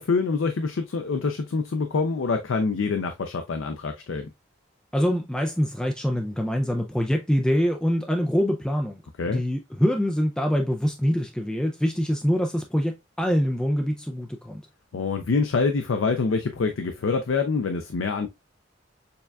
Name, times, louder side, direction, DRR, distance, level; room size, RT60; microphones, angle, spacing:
voice 1, 0.0-4.3 9.2-9.4 14.9-18.3, left 4 dB, 85° left, 0.5 m, -25 dB
voice 2, 4.9-14.6, equal, 5° left, 0.3 m, -25 dB
6.7 x 2.3 x 2.2 m
head